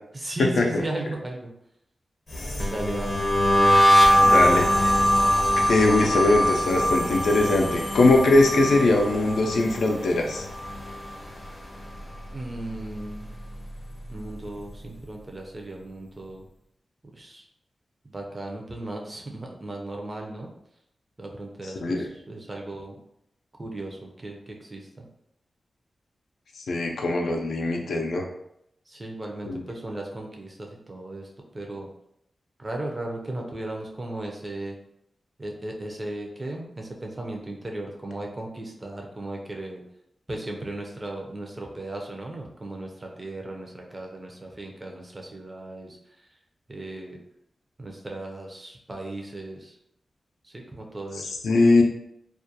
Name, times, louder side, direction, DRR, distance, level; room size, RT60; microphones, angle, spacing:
voice 1, 0.1-1.5 2.7-3.3 12.3-13.3 14.1-16.5 17.1-17.4 18.0-20.5 21.2-23.0 23.6-25.0 28.9-31.9 32.6-34.7 35.4-39.8 40.3-46.0 46.7-47.2 47.8-49.7 50.4-51.3, right 1 dB, 30° right, 0 dB, 0.5 m, -36 dB
sound 1, 2.3-11.5 11.8-12.2 12.5-14.1, equal, 55° left, 0.7 m, -22 dB
voice 2, 4.2-5.0 5.7-10.4 21.8-22.1 26.7-28.2 29.5-29.6 51.2-51.8, left 2 dB, 90° left, 1 dB, 0.4 m, -21 dB
2.3 x 2.2 x 2.7 m, 0.77 s
cardioid pair, 65°, 0 cm